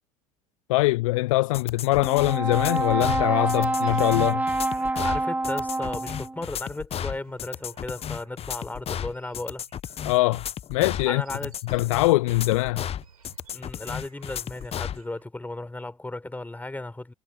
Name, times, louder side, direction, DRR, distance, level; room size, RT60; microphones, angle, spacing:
voice 1, 0.7-4.4 10.1-10.4 10.7-11.2 11.7-12.9, left 20 dB, 65° left, 0.5 m, -22 dB
sound 1, 1.5-15.0, left 9 dB, 30° left, 1.0 m, -34 dB
Brass instrument, 2.0-6.4, right 2 dB, 10° right, 1.3 m, -26 dB
sound 2, 2.3-12.5 13.0-15.3, right 5 dB, 80° right, 4.9 m, -58 dB
voice 2, 5.0-9.6 11.1-11.5 13.5-17.1, left 2 dB, 10° left, 4.2 m, -35 dB
figure-of-eight pair, 65°, 19 cm